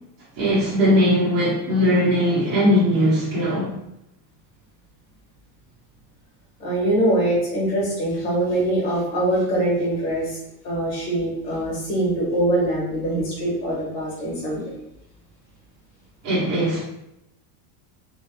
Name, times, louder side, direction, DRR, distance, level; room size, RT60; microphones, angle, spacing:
voice 1, 0.3-3.7 16.2-16.8, equal, 15° right, -11 dB, 0.4 m, -19 dB
voice 2, 6.6-10.4 10.6-14.7, right 1 dB, 30° left, -3 dB, 1.2 m, -23 dB
3.0 x 3.0 x 3.1 m, 0.85 s
supercardioid pair, 180°, 50 cm